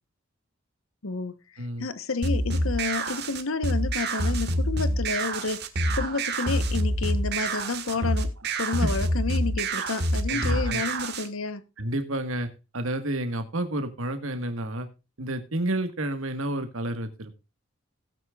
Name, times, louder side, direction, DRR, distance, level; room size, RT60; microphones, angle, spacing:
voice 1, 1.0-5.7 5.9-11.6, left 3 dB, 80° left, 1.1 m, -30 dB
sound 1, 2.2-11.3, right 1 dB, 55° right, 1.8 m, -27 dB
voice 2, 10.3-10.8 11.8-14.9 15.2-17.3, right 1 dB, 75° right, 1.5 m, -30 dB
16.5 x 9.3 x 2.4 m
head